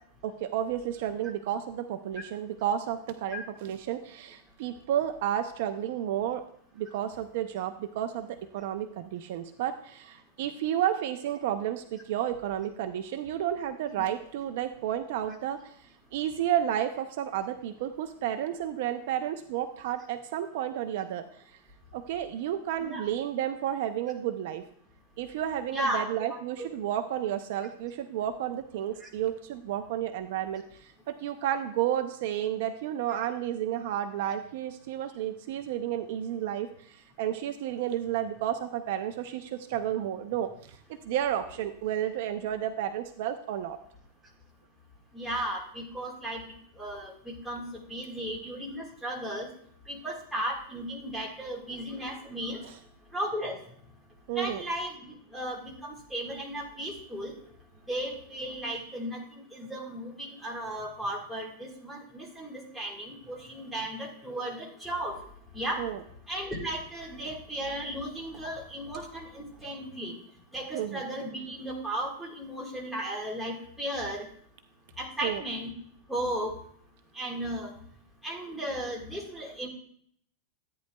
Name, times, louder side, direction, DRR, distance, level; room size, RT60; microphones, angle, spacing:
voice 1, 0.2-6.4 6.8-15.7 16.1-21.2 21.9-24.6 25.2-40.8 41.0-43.8 52.6-52.7 54.3-54.6 65.8-66.0 70.7-71.0 75.2-75.4, right 11 dB, 50° right, 8 dB, 0.5 m, -31 dB
voice 2, 25.7-26.7 29.0-29.1 45.1-46.4 46.8-47.1 47.4-47.6 47.9-49.5 49.9-52.6 53.1-53.6 54.3-55.0 55.3-57.3 57.9-65.2 65.5-65.8 66.3-70.1 70.5-74.3 75.0-75.7 76.1-76.5 77.1-77.7 78.2-79.7, right 1 dB, ahead, -4 dB, 1.6 m, -35 dB
13.5 x 9.3 x 2.2 m, 0.64 s
supercardioid pair, 170°, 0 cm